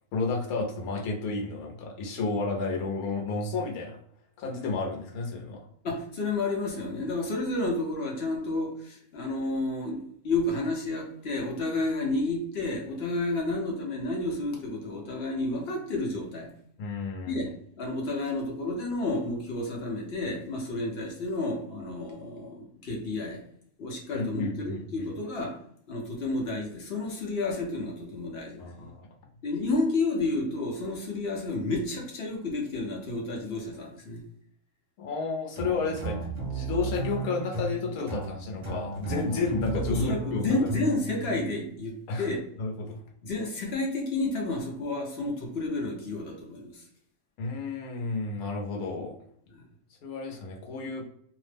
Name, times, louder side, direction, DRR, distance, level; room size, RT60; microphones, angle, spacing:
voice 1, 0.1-4.0 4.4-5.6 16.8-17.4 24.1-25.1 28.6-29.1 35.0-36.2 36.5-40.6 42.1-42.3 42.6-43.0 47.4-49.1 50.0-51.0, left 3 dB, 85° left, 1 dB, 1.1 m, -31 dB
voice 2, 5.8-16.5 17.3-23.4 23.8-25.6 25.9-28.9 29.4-34.2 39.7-42.4 43.2-46.8 49.5-49.6, left 2 dB, 55° left, 0 dB, 0.9 m, -31 dB
sound 1, 35.5-41.9, right 3 dB, 35° right, 0.9 m, -34 dB
2.8 x 2.0 x 3.2 m, 0.65 s
omnidirectional pair, 1.5 m